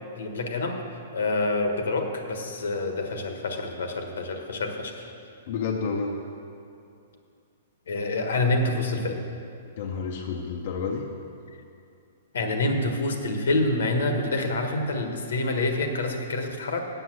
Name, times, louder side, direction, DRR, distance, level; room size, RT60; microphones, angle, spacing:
voice 1, 0.1-0.8 1.1-5.1 7.9-9.2 12.3-16.8, left 2 dB, 85° left, 4 dB, 1.3 m, -27 dB
voice 2, 5.5-6.2 9.8-11.1, left 5 dB, 55° left, 2 dB, 0.7 m, -30 dB
8.1 x 7.1 x 7.7 m, 2.6 s
hypercardioid pair, 150°, 0 cm